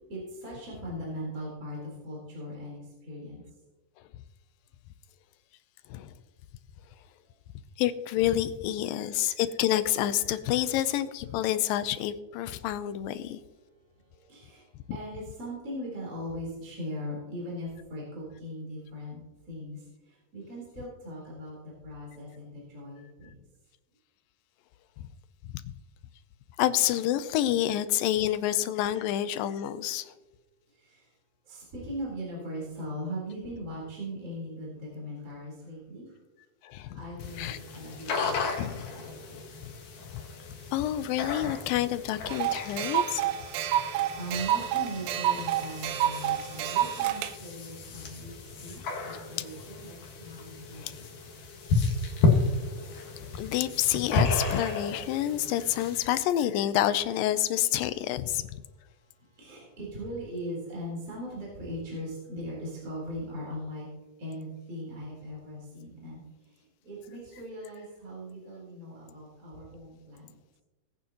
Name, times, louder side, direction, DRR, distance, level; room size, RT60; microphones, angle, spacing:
voice 1, 0.1-3.4 14.1-23.3 30.7-31.1 31.5-36.1 36.9-39.4 43.8-48.3 48.6-51.1 59.3-63.9 64.2-70.4, equal, 25° right, -5 dB, 3.9 m, -40 dB
voice 2, 7.8-13.4 26.6-30.1 36.6-37.0 37.4-37.6 38.6-38.7 40.7-43.2 50.8-50.9 53.4-58.5, left 12 dB, 85° left, 13 dB, 2.3 m, -28 dB
sound 1, 37.2-56.0, left 3 dB, 65° left, 2.9 m, -33 dB
sound 2, 42.3-47.3, right 11 dB, 80° right, 1.7 m, -29 dB
20.0 x 9.3 x 2.9 m, 1.2 s
omnidirectional pair, 4.0 m